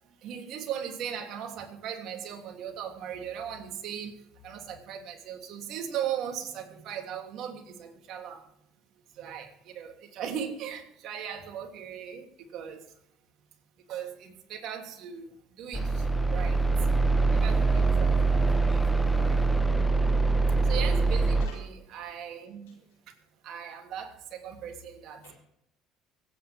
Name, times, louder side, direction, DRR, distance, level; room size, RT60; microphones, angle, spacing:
voice 1, 0.0-8.5 9.1-13.0 13.9-16.7 17.2-19.5 20.6-23.1 23.4-25.3, right 8 dB, 60° right, 3.1 m, -38 dB
sound 1, 15.7-21.5, right 3 dB, 5° left, 1.2 m, -24 dB
voice 2, 19.3-20.7 21.4-21.6 25.2-25.3, left 2 dB, 90° left, 5.7 m, -52 dB
24.5 x 9.6 x 3.6 m
hypercardioid pair, 75°, 0 cm